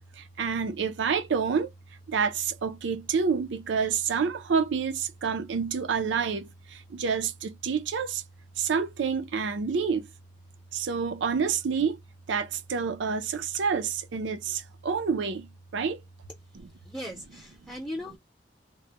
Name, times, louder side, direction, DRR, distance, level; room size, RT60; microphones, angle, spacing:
voice 1, 0.4-1.7 2.1-6.5 6.9-8.2 8.6-10.0 10.7-12.0 12.3-15.5 15.7-16.0, right 6 dB, 85° right, 0.5 m, -28 dB
voice 2, 16.8-18.2, equal, 5° left, 0.7 m, -38 dB
2.2 x 2.1 x 2.7 m
head